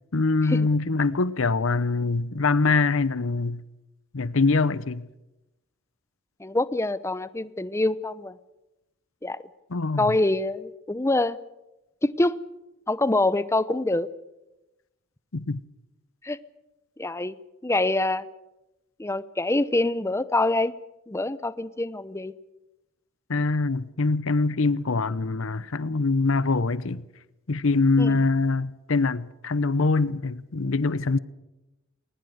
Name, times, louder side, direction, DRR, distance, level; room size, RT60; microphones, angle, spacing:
voice 1, 0.1-3.6 4.1-5.1 9.7-10.1 15.3-15.6 23.3-27.1 27.5-31.2, left 3 dB, 65° left, 0.8 m, -24 dB
voice 2, 6.4-8.4 9.2-9.4 10.0-11.4 12.0-12.4 12.9-14.1 16.2-16.4 17.0-17.3 17.6-18.3 19.0-20.7 21.1-22.3 28.0-28.2, left 2 dB, 15° left, 0.7 m, -25 dB
20.5 x 20.0 x 8.0 m
head